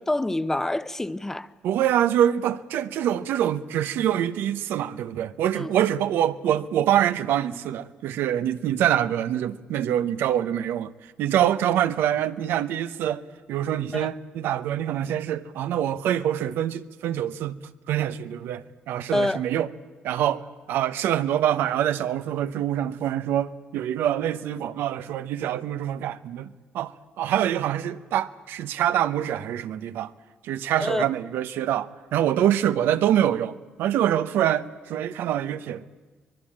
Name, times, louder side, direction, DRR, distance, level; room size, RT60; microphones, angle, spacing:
voice 1, 0.0-1.5 5.5-5.7 13.9-14.1 19.1-19.4 30.8-31.1, left 1 dB, 10° left, 0.8 m, -26 dB
voice 2, 1.6-13.2 13.5-17.6 17.9-19.7 20.0-30.1 30.4-35.8, right 11 dB, 90° right, 0.9 m, -25 dB
24.0 x 21.0 x 8.7 m
cardioid pair, 105°, 4 cm